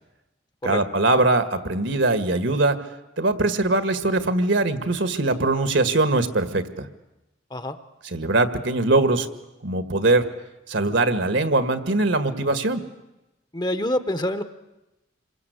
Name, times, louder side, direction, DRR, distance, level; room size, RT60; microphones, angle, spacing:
voice 1, 0.6-2.8 3.2-6.9 8.1-9.3 9.6-10.2 10.7-12.8, right 2 dB, 65° right, 10 dB, 1.8 m, -21 dB
voice 2, 13.5-14.4, left 1 dB, 20° left, 10 dB, 1.0 m, -26 dB
27.5 x 23.0 x 8.2 m, 0.98 s
head